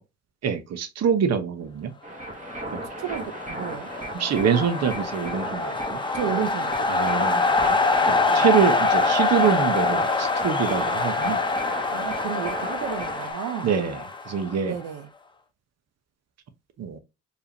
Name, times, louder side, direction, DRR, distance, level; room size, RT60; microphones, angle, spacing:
voice 1, 0.4-1.9 4.1-6.0 6.9-7.8 8.3-11.4 13.6-14.0 14.3-14.8 16.8-17.0, right 7 dB, 60° right, 1.0 m, -25 dB
sound 1, 2.0-13.3, right 1 dB, 25° right, 1.8 m, -35 dB
sound 2, 2.9-14.8, left 3 dB, 15° left, 0.8 m, -25 dB
voice 2, 3.0-3.9 6.1-6.9 8.2-8.4 11.9-13.7 14.6-15.1, right 9 dB, 85° right, 0.8 m, -32 dB
4.6 x 3.5 x 2.7 m
cardioid pair, 90°, 30 cm